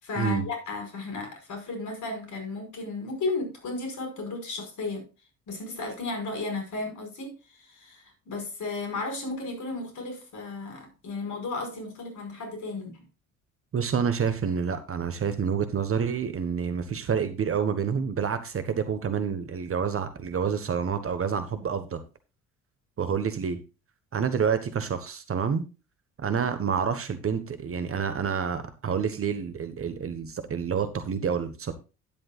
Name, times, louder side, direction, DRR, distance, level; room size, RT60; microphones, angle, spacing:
voice 1, 0.0-5.1 5.5-13.0, left 3 dB, 45° left, 5.2 m, -34 dB
voice 2, 13.7-22.0 23.0-23.6 24.1-25.6 26.2-31.7, right 7 dB, 30° right, 1.4 m, -28 dB
12.5 x 11.0 x 2.4 m
figure-of-eight pair, 55°, 41 cm